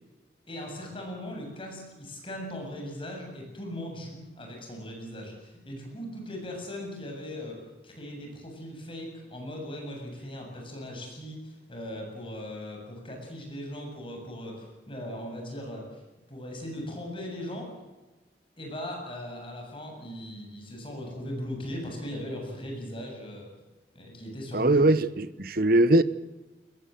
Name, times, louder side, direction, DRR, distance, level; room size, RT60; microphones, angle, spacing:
voice 1, 0.5-15.9 16.3-17.7 18.6-23.5 23.9-24.9, left 1 dB, 30° left, 7.6 m, -39 dB
voice 2, 24.5-26.0, right 2 dB, 55° right, 1.1 m, -21 dB
21.5 x 21.5 x 7.8 m
head